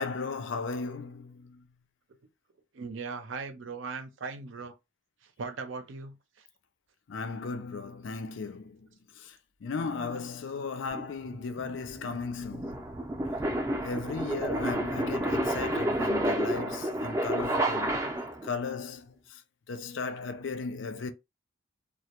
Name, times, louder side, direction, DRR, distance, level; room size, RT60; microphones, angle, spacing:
voice 1, 0.0-1.6 7.1-8.9 9.2-12.9 13.8-18.0 18.4-19.4 19.7-21.1, left 4 dB, 75° left, 0.4 m, -36 dB
voice 2, 2.7-4.7 5.4-6.1 9.8-10.0, right 4 dB, 80° right, 0.5 m, -38 dB
sound 1, 10.9-18.5, right 1 dB, 15° right, 0.4 m, -30 dB
2.2 x 2.1 x 2.8 m
head